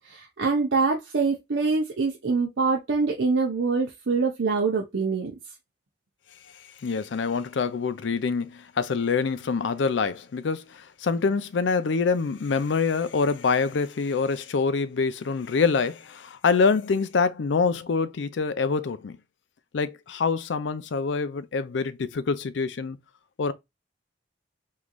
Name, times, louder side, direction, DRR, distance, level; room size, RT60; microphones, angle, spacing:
voice 1, 0.0-5.3, right 4 dB, 80° right, 0.7 m, -25 dB
voice 2, 6.8-19.2 19.7-23.0 23.4-23.5, left 5 dB, 75° left, 0.4 m, -25 dB
3.7 x 3.1 x 2.3 m
head